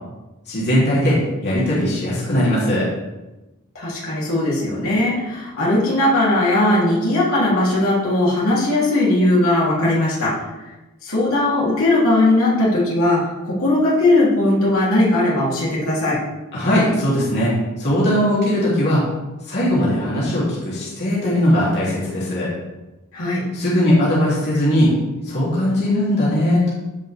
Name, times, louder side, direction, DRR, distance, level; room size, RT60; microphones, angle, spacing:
voice 1, 0.5-2.9 16.5-17.5 17.8-19.0 19.5-22.5 23.5-24.9 25.2-26.7, equal, 50° left, -8 dB, 3.3 m, -19 dB
voice 2, 3.8-10.4 11.0-16.2 23.1-23.4, left 1 dB, 70° left, -7 dB, 3.6 m, -18 dB
15.5 x 5.5 x 3.7 m, 1.0 s
head